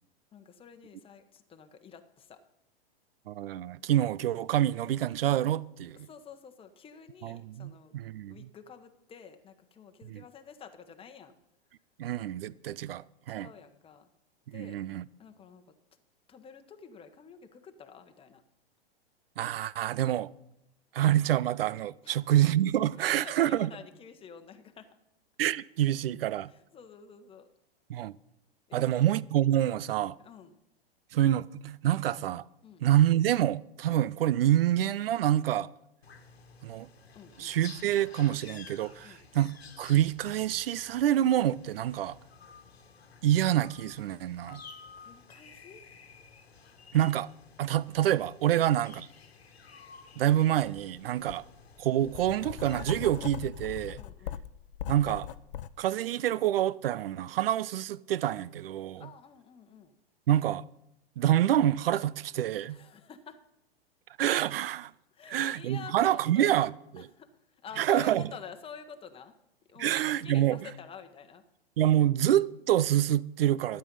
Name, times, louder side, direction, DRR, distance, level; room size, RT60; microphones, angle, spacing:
voice 1, 0.3-2.4 6.0-7.9 8.3-11.3 13.3-14.1 14.5-14.8 15.2-15.6 16.3-18.4 22.0-22.2 22.9-25.0 25.9-26.0 26.5-27.5 28.7-29.1 30.2-30.6 32.6-32.9 37.1-37.6 39.0-39.3 45.0-45.8 48.5-48.7 51.1-51.3 54.0-54.4 59.0-60.0 62.7-63.4 65.1-66.6 66.9-69.3 69.7-71.4, left 7 dB, 20° left, 1.1 m, -49 dB
voice 2, 3.3-6.1 7.2-8.4 10.1-10.2 12.0-13.5 14.5-15.0 19.4-20.3 20.9-23.7 25.4-26.5 27.9-28.2 28.7-30.2 31.1-32.4 32.8-35.7 36.6-36.9 37.4-42.2 43.2-44.6 46.9-47.3 47.6-49.1 50.2-51.4 51.8-54.0 54.9-55.3 55.8-59.1 60.3-60.6 61.2-62.8 64.2-64.9 65.3-67.1 67.8-68.2 69.8-70.6 71.8-73.8, right 12 dB, 70° right, 0.5 m, -27 dB
sound 1, 36.0-53.3, left 5 dB, 85° left, 1.5 m, -53 dB
Writing, 50.6-50.8 51.3-55.7, left 11 dB, 60° left, 0.6 m, -40 dB
12.5 x 8.9 x 5.4 m
hypercardioid pair, 105°, 31 cm